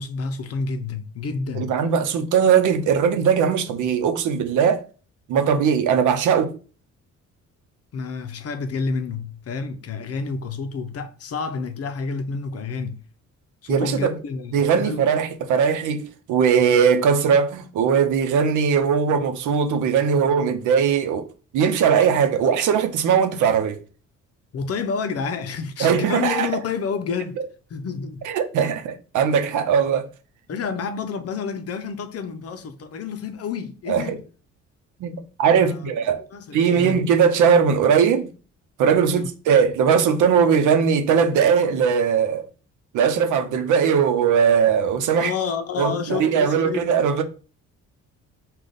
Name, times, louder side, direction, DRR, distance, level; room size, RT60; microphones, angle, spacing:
voice 1, 0.0-1.8 7.9-13.0 13.6-15.0 24.5-27.4 27.7-28.3 30.5-34.2 35.5-35.9 36.3-37.1 39.1-39.3 44.8-46.9, left 5 dB, 50° left, 0.6 m, -29 dB
voice 2, 1.6-4.8 5.3-6.5 13.7-14.1 14.5-21.3 21.5-23.8 25.8-26.5 28.3-30.1 33.9-34.0 35.0-36.2 36.5-38.3 38.8-42.5 42.9-45.3 45.8-47.2, right 7 dB, 80° right, 0.7 m, -19 dB
5.0 x 2.4 x 3.9 m
cardioid pair, 90°, 30 cm